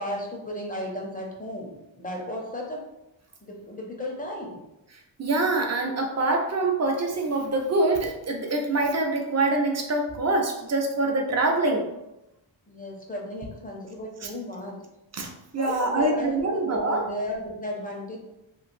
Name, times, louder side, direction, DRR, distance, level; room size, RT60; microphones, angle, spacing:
voice 1, 0.0-2.9 3.4-4.6 12.7-14.8 15.6-18.2, left 1 dB, 20° left, -1 dB, 0.5 m, -34 dB
voice 2, 5.2-11.9 14.2-14.3 15.1-17.1, right 2 dB, 35° right, 2 dB, 0.4 m, -25 dB
3.0 x 2.5 x 2.5 m, 0.89 s
wide cardioid pair, 160°, 47 cm